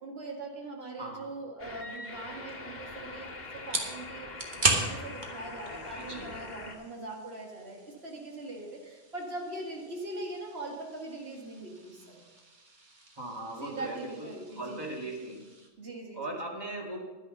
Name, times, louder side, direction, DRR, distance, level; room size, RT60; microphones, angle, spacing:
voice 1, 0.0-12.2 13.6-14.9 15.8-16.4, right 2 dB, 80° right, -1 dB, 2.2 m, -41 dB
voice 2, 1.0-1.3 5.7-6.3 13.2-15.4 16.1-17.0, right 2 dB, 25° right, -2 dB, 2.3 m, -39 dB
sound 1, 1.6-6.8, left 3 dB, 45° left, 1.9 m, -43 dB
sound 2, 2.5-15.7, right 2 dB, 50° right, 1.6 m, -38 dB
11.0 x 9.8 x 5.3 m, 1.2 s
omnidirectional pair, 1.0 m